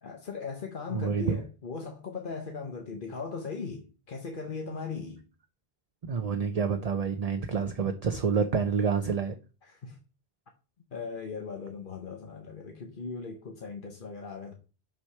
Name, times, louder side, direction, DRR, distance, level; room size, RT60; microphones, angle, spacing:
voice 1, 0.0-5.2 9.6-10.0 10.9-14.5, left 4 dB, 55° left, 1.1 m, -38 dB
voice 2, 0.9-1.4 6.1-9.4, right 6 dB, 45° right, 0.7 m, -28 dB
6.1 x 4.9 x 5.6 m
omnidirectional pair, 1.0 m